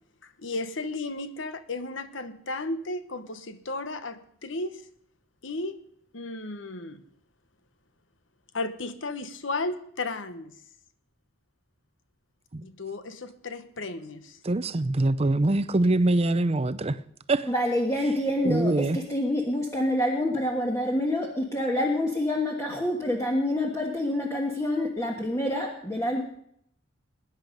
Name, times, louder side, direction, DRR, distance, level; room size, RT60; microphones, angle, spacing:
voice 1, 0.2-4.8 5.4-5.8 6.1-7.0 8.5-10.6 12.6-14.4, left 2 dB, 70° left, 1.1 m, -34 dB
voice 2, 14.4-17.0 17.3-17.5 18.4-19.0, right 2 dB, 30° right, 0.6 m, -24 dB
voice 3, 17.4-26.2, left 1 dB, 15° left, 1.4 m, -27 dB
20.5 x 10.0 x 5.3 m
head